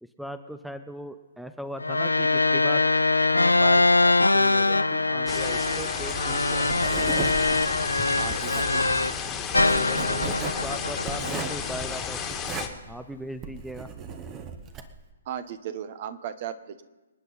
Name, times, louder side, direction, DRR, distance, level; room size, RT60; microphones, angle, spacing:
voice 1, 0.0-2.9 3.3-6.8 9.7-12.2 12.9-13.9, equal, ahead, 10 dB, 0.6 m, -39 dB
sound 1, 1.8-9.2 9.5-11.9, left 2 dB, 90° left, 0.5 m, -23 dB
sound 2, 5.3-12.7, left 7 dB, 20° left, 1.7 m, -33 dB
Writing, 6.1-15.0, right 6 dB, 25° right, 1.2 m, -37 dB
voice 2, 8.2-8.9 15.2-16.8, right 9 dB, 45° right, 12 dB, 1.1 m, -36 dB
27.0 x 9.2 x 4.2 m, 1.1 s
figure-of-eight pair, 130°, 0 cm